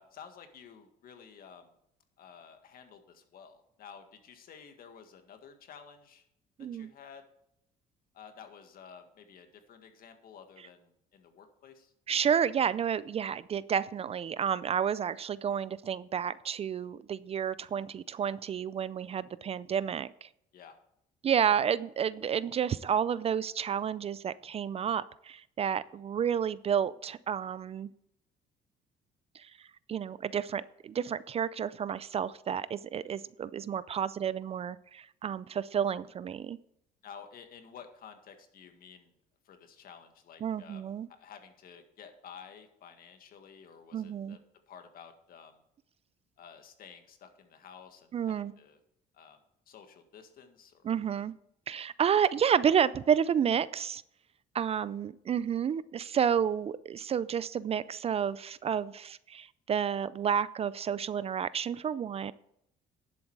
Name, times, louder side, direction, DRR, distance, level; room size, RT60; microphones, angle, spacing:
voice 1, 0.0-1.7 2.2-6.2 6.6-7.2 8.1-11.9 20.5-20.8 21.4-21.7 33.0-33.2 37.0-39.1 39.5-40.8 41.1-44.4 44.7-45.6 46.4-48.8 49.1-49.4 49.7-50.8, left 7 dB, 60° left, 6 dB, 1.8 m, -52 dB
voice 2, 6.6-6.9 12.1-20.3 21.2-27.9 29.3-29.5 29.9-36.6 40.4-41.1 43.9-44.4 48.1-48.5 50.8-51.3 51.7-54.0 54.5-62.3, right 8 dB, 35° right, 18 dB, 0.4 m, -30 dB
11.0 x 7.8 x 4.7 m, 0.74 s
cardioid pair, 110°, 17 cm